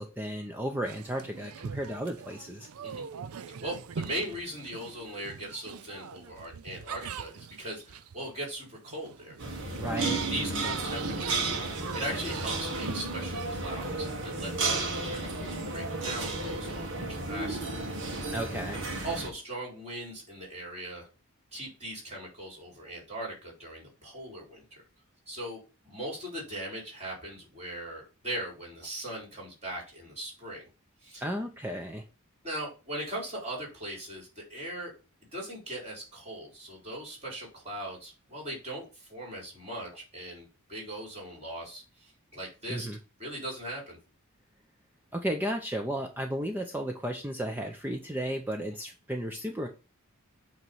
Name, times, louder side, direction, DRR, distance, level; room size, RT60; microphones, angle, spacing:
voice 1, 0.0-2.7 9.8-10.2 18.3-18.8 31.2-32.0 42.7-43.0 45.1-49.7, equal, 10° right, 3 dB, 0.7 m, -34 dB
sound 1, 0.9-13.5, right 7 dB, 80° right, 0.5 m, -42 dB
voice 2, 3.3-9.7 10.3-17.8 18.1-18.3 19.0-21.1 21.5-24.8 25.3-30.7 31.0-31.2 32.4-34.9 35.3-42.9 43.2-44.0, right 1 dB, 30° right, -2 dB, 4.1 m, -39 dB
sound 2, 9.4-19.3, right 2 dB, 60° right, 1.6 m, -33 dB
8.5 x 3.1 x 5.4 m, 0.32 s
head